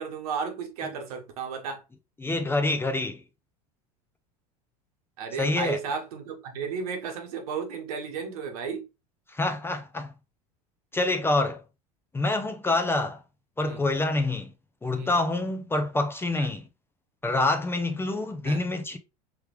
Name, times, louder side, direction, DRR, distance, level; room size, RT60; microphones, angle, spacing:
voice 1, 0.0-1.8 5.2-8.9 13.6-13.8 14.9-15.1 16.3-16.5 18.4-18.6, right 5 dB, 65° right, 1.1 m, -34 dB
voice 2, 2.2-3.2 5.4-5.8 9.3-10.1 10.9-11.6 12.1-13.2 13.6-14.5 14.8-16.7 17.2-19.0, left 2 dB, 10° left, 0.5 m, -26 dB
3.4 x 3.3 x 3.1 m
hypercardioid pair, 80°, 20 cm